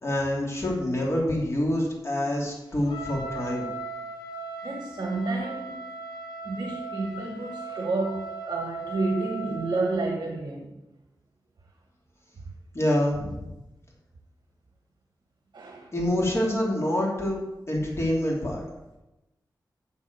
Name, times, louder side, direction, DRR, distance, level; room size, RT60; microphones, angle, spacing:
voice 1, 0.0-3.7 12.7-13.4 15.9-18.6, left 1 dB, 35° left, -3 dB, 2.8 m, -26 dB
Trumpet, 2.8-10.2, right 3 dB, 90° left, 1.8 m, -38 dB
voice 2, 4.6-6.0 6.4-10.7 15.5-15.9, right 3 dB, 60° right, 3 dB, 1.3 m, -30 dB
7.2 x 6.9 x 8.1 m, 0.98 s
wide cardioid pair, 115°, 8 cm